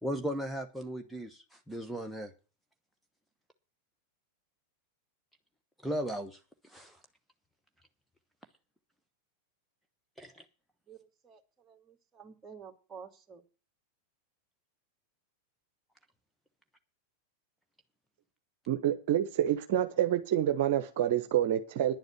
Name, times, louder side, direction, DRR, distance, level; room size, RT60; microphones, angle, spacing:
voice 1, 0.0-2.3 5.8-7.0 10.2-10.4, equal, ahead, 3 dB, 1.1 m, -37 dB
voice 2, 10.9-13.4, right 6 dB, 20° right, 5 dB, 2.1 m, -51 dB
voice 3, 18.7-21.9, right 11 dB, 50° right, 9 dB, 1.0 m, -28 dB
10.5 x 7.8 x 7.5 m, 0.34 s
figure-of-eight pair, 90°, 0 cm